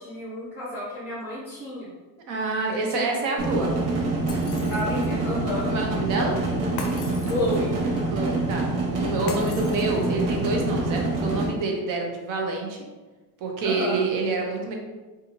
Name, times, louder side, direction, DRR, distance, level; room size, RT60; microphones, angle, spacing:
voice 1, 0.0-1.9 2.7-3.1 3.6-3.7 4.7-5.6 7.3-7.7 13.6-14.0, left 1 dB, 5° right, -8 dB, 0.8 m, -31 dB
voice 2, 2.3-3.7 5.7-6.4 8.1-8.7 9.0-12.8 13.4-14.7, right 3 dB, 45° right, 1 dB, 0.6 m, -27 dB
sound 1, 3.4-11.5, right 2 dB, 75° right, 0.9 m, -26 dB
Shatter, 4.3-5.2 6.8-7.8 9.3-10.3, left 4 dB, 50° left, 0.5 m, -39 dB
2.5 x 2.4 x 2.9 m, 1.2 s
cardioid pair, 155°, 45 cm